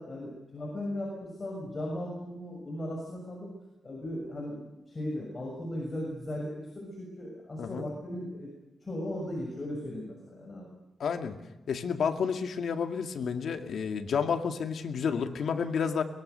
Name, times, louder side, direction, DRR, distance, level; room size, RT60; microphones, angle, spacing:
voice 1, 0.0-3.5 3.8-8.5 8.8-10.7, left 1 dB, 30° left, -2 dB, 6.5 m, -37 dB
voice 2, 11.0-11.4 11.7-16.0, left 6 dB, 70° left, 6 dB, 2.2 m, -30 dB
23.0 x 22.0 x 6.9 m, 1.0 s
wide cardioid pair, 125°, 0 cm